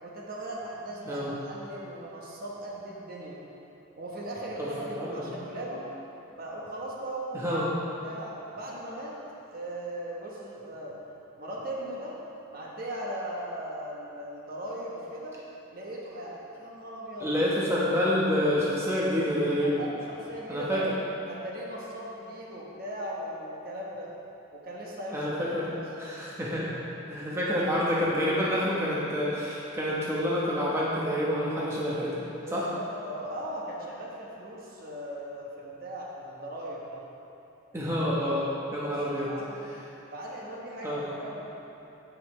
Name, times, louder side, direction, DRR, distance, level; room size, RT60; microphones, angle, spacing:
voice 1, 0.0-3.5 4.0-5.9 6.3-7.6 8.0-11.0 11.4-12.2 12.5-15.4 15.7-17.3 19.6-20.9 21.3-24.1 24.5-25.8 32.4-37.0 38.8-39.6 40.1-41.5, right 1 dB, 45° right, -4 dB, 1.1 m, -38 dB
voice 2, 5.0-5.3 7.3-7.7 17.2-19.8 20.5-20.9 25.1-25.7 26.0-26.8 27.1-32.2 32.5-32.7 37.7-39.3 39.7-39.8 40.8-41.2, equal, 10° right, -7 dB, 1.1 m, -28 dB
15.5 x 5.6 x 3.2 m, 2.9 s
head